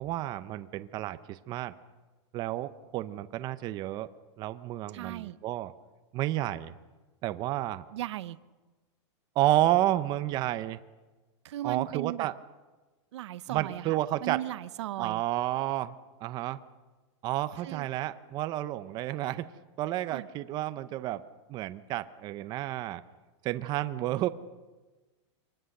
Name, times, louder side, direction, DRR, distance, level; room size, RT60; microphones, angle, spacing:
voice 1, 0.0-1.7 2.3-4.1 4.4-5.7 6.1-6.7 7.2-7.8 9.4-10.8 11.6-12.4 13.5-14.4 15.0-16.0 16.2-16.6 17.2-19.5 19.8-21.2 21.5-23.0 23.4-24.3, right 15 dB, 25° right, 12 dB, 0.6 m, -30 dB
voice 2, 4.9-5.4 7.9-8.4 11.4-12.3 13.1-15.2 17.6-17.9 20.1-20.3, right 14 dB, 70° right, 15 dB, 0.8 m, -37 dB
24.5 x 19.5 x 6.6 m, 1.2 s
supercardioid pair, 155°, 15 cm